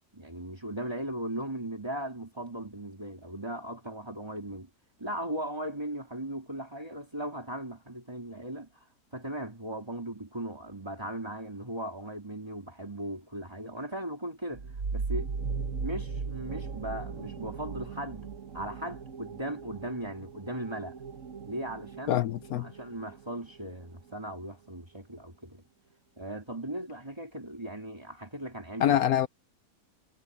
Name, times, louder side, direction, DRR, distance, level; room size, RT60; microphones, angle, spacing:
voice 1, 0.1-4.7 5.0-8.7 9.1-14.6 14.9-15.3 15.8-18.3 18.5-21.0 21.5-22.3 22.6-25.6 26.2-29.0, right 1 dB, 15° right, 3.4 m, -38 dB
sound 1, 14.5-23.9, right 5 dB, 55° right, 1.8 m, -38 dB
voice 2, 22.1-22.7 28.8-29.3, left 11 dB, 70° left, 1.0 m, -25 dB
omnidirectional pair, 1.6 m